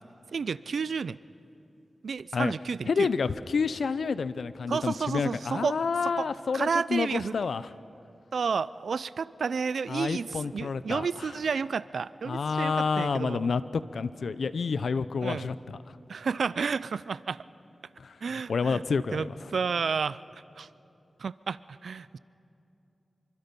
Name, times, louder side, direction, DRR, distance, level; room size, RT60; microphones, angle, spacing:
voice 1, 0.3-1.2 2.0-3.1 4.7-5.8 6.0-6.3 6.5-7.4 8.3-13.5 15.2-15.5 16.1-17.4 18.2-18.8 19.1-20.2 20.6-20.7 21.2-22.2, right 5 dB, 80° right, 18 dB, 0.4 m, -31 dB
voice 2, 2.9-7.6 9.9-11.1 12.3-15.8 18.0-18.2 18.5-19.3, left 5 dB, 80° left, 15 dB, 0.6 m, -29 dB
26.5 x 24.0 x 5.4 m, 2.8 s
wide cardioid pair, 80°, 0 cm